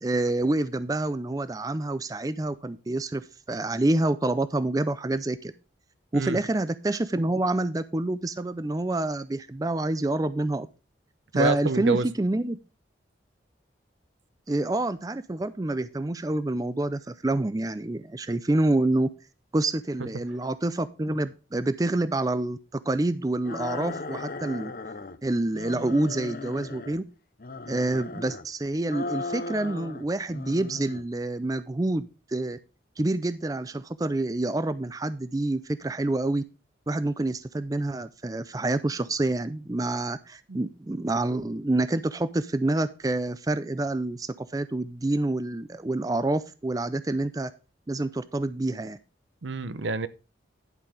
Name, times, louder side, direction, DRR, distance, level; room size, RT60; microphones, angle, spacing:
voice 1, 0.0-5.5 6.1-10.7 11.3-12.6 14.5-19.1 19.5-24.7 25.2-27.0 27.7-32.6 33.0-36.4 36.9-47.5 47.9-49.0, right 2 dB, 20° right, 0.4 m, -27 dB
voice 2, 11.3-12.1 40.5-40.6 49.4-50.1, right 3 dB, 80° right, 0.7 m, -27 dB
sound 1, 23.4-25.2 25.5-27.0 27.4-28.5 28.9-30.1 30.3-31.1, left 3 dB, 50° left, 0.7 m, -37 dB
11.0 x 5.7 x 5.0 m
head